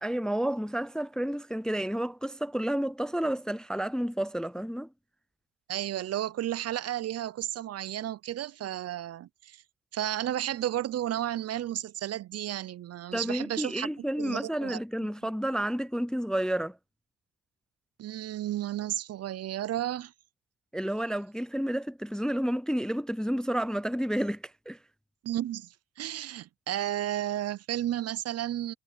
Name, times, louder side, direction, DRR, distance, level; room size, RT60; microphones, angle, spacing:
voice 1, 0.0-4.9 13.1-16.8 20.7-24.8, right 1 dB, ahead, 0.4 m, -30 dB
voice 2, 5.7-9.6 9.9-13.9 14.2-15.1 18.0-20.1 25.2-28.7, right 12 dB, 55° right, 0.6 m, -33 dB
cardioid pair, 90°, 30 cm